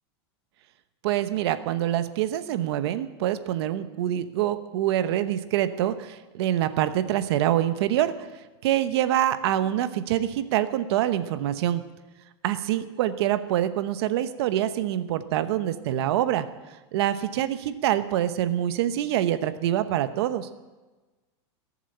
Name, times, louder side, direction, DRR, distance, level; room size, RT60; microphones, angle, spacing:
voice 1, 1.0-11.8 12.4-16.5 16.9-20.5, right 12 dB, 65° right, 11 dB, 1.0 m, -25 dB
18.0 x 7.3 x 9.9 m, 1.2 s
supercardioid pair, 150°, 14 cm